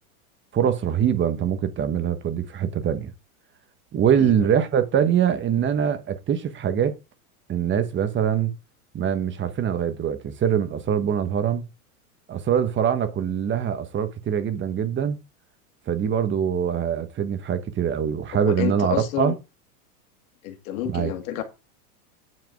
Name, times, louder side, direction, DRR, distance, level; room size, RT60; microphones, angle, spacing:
voice 1, 0.5-3.1 3.9-7.0 7.5-8.5 8.9-11.7 12.3-15.2 15.9-19.3 20.8-21.1, right 8 dB, 25° right, 1.3 m, -23 dB
voice 2, 18.4-19.3 20.4-21.4, left 11 dB, 65° left, 2.2 m, -29 dB
9.6 x 4.9 x 4.7 m
supercardioid pair, 120°, 45 cm